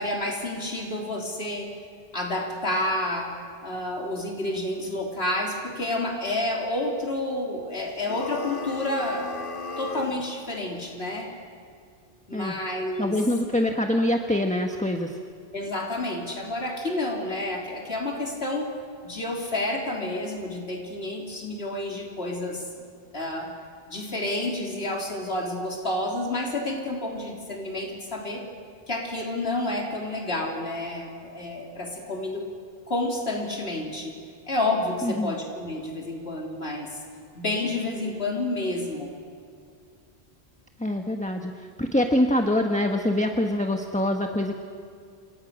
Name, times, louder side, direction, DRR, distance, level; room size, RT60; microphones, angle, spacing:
voice 1, 0.0-1.7 2.1-3.3 3.6-9.3 9.8-11.3 12.3-13.2 15.5-18.7 19.0-22.8 23.1-23.5 23.9-28.4 28.9-32.5 32.9-34.2 34.5-37.0 37.4-39.1, left 1 dB, 75° left, -1 dB, 3.7 m, -29 dB
sound 1, 8.0-10.3, left 3 dB, 55° left, 1.6 m, -35 dB
voice 2, 13.0-15.2 35.0-35.3 40.8-44.5, left 1 dB, 5° left, 4 dB, 1.3 m, -25 dB
29.5 x 27.5 x 6.5 m, 2.4 s
omnidirectional pair, 1.1 m